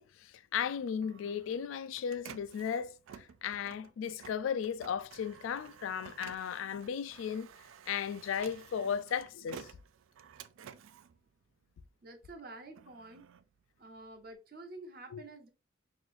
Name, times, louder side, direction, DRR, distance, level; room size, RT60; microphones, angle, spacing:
voice 1, 0.0-7.5 7.9-9.7 15.1-15.2, left 7 dB, 85° left, 0.3 m, -36 dB
Printer, 0.7-12.0 12.5-14.3, right 7 dB, 90° right, 0.3 m, -53 dB
voice 2, 12.0-13.2 13.8-15.5, right 2 dB, 50° right, 0.8 m, -49 dB
3.0 x 2.5 x 3.8 m
head